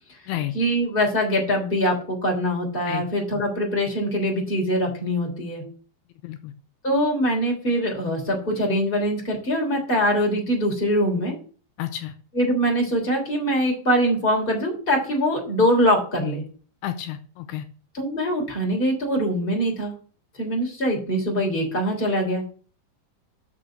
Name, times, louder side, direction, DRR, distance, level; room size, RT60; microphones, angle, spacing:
voice 1, 0.5-5.6 6.8-11.3 12.3-16.4 17.9-19.9 20.4-22.4, equal, 15° left, 1 dB, 3.0 m, -23 dB
voice 2, 11.8-12.1 16.8-17.7, left 12 dB, 80° left, 9 dB, 2.8 m, -31 dB
6.7 x 6.4 x 7.5 m, 0.40 s
omnidirectional pair, 4.7 m